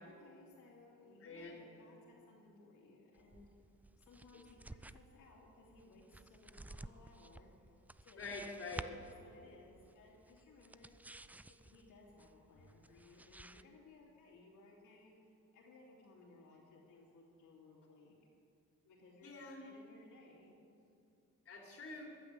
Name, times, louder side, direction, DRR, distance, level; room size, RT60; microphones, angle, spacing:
voice 1, 0.0-3.5 4.0-7.7 8.0-8.4 8.8-11.0 11.5-18.2 18.8-20.5, left 3 dB, 80° left, -4 dB, 2.9 m, -61 dB
voice 2, 1.2-1.6 8.2-8.9 19.2-19.7 21.4-22.1, left 3 dB, 50° left, -1 dB, 3.4 m, -46 dB
sound 1, 3.2-13.6, right 2 dB, 5° right, 0.3 m, -54 dB
14.0 x 9.2 x 7.6 m, 2.4 s
cardioid pair, 90°, 30 cm